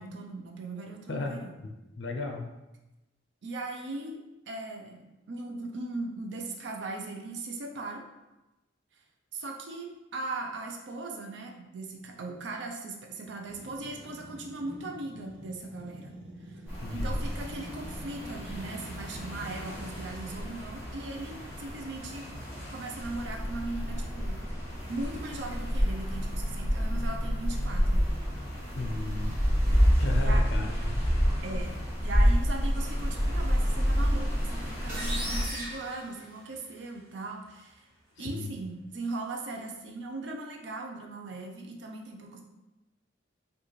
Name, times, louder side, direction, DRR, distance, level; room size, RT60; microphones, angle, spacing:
voice 1, 0.0-1.5 3.4-4.2 4.5-8.0 9.3-16.2 16.5-16.6 16.9-22.3 22.7-24.4 24.9-28.1 30.2-30.4 31.4-37.8 38.2-42.4, right 2 dB, 65° right, 1 dB, 0.5 m, -39 dB
voice 2, 1.1-2.5 16.7-17.2 28.7-29.3 30.0-31.0 38.2-38.5, left 2 dB, 65° left, 3 dB, 0.5 m, -35 dB
sound 1, 13.5-20.2, equal, 80° right, 0.8 m, -47 dB
sound 2, 16.7-35.4, equal, 10° right, 1.3 m, -29 dB
sound 3, 34.9-36.8, right 1 dB, 45° right, 0.9 m, -38 dB
4.7 x 2.4 x 3.1 m, 1.0 s
head